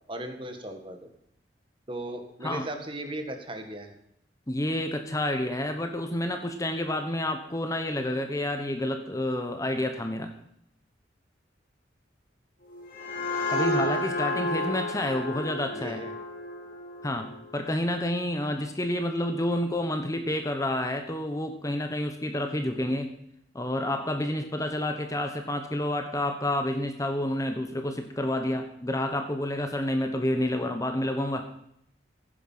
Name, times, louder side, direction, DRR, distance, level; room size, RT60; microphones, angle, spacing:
voice 1, 0.1-1.1 1.9-4.0 13.8-14.0 15.7-16.1 22.9-23.0, right 1 dB, 25° right, 6 dB, 1.7 m, -37 dB
voice 2, 4.5-10.3 13.5-16.0 17.0-23.1 23.5-31.6, left 1 dB, 15° left, 6 dB, 1.1 m, -29 dB
sound 1, 12.7-18.1, left 1 dB, 45° left, 3.2 m, -32 dB
15.5 x 10.0 x 5.7 m, 0.75 s
head